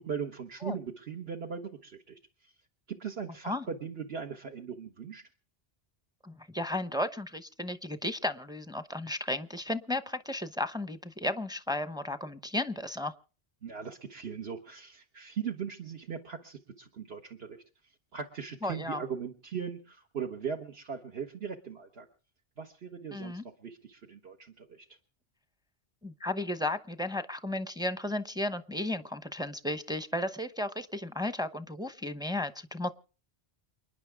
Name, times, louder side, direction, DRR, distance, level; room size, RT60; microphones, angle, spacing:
voice 1, 0.0-2.5 2.9-5.2 13.6-17.6 18.1-22.1 22.6-25.0, right 6 dB, 65° right, 3 dB, 1.4 m, -39 dB
voice 2, 6.2-13.1 18.6-19.0 23.1-23.4 26.0-32.9, left 1 dB, 5° right, 11 dB, 0.7 m, -34 dB
29.0 x 10.0 x 3.5 m, 0.38 s
omnidirectional pair, 1.1 m